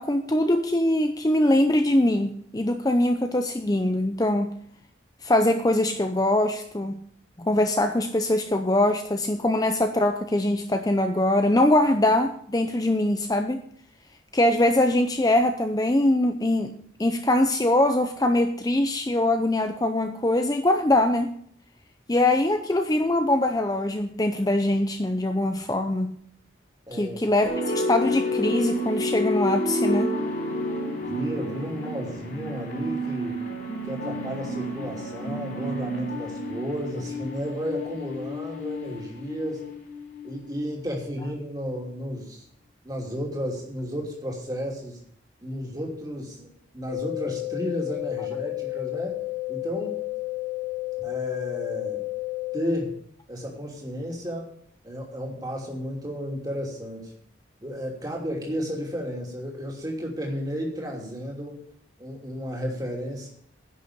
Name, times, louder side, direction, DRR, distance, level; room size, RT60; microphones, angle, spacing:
voice 1, 0.0-4.5 5.2-7.0 7.4-13.6 14.3-21.4 22.1-26.2 26.9-30.2, left 1 dB, 20° left, 6 dB, 0.6 m, -23 dB
voice 2, 26.9-27.2 31.0-33.4 33.8-39.7 40.2-42.5 42.8-45.0 45.4-46.5 46.7-49.2 49.5-50.0 51.0-52.0 52.5-52.9 53.3-54.5 54.8-57.1 57.6-61.6 62.0-63.3, equal, 20° right, -1 dB, 2.8 m, -33 dB
sound 1, 27.4-40.8, equal, 50° left, 3.4 m, -30 dB
sound 2, 46.9-52.9, left 22 dB, 85° left, 4.4 m, -32 dB
10.5 x 6.5 x 8.7 m, 0.63 s
head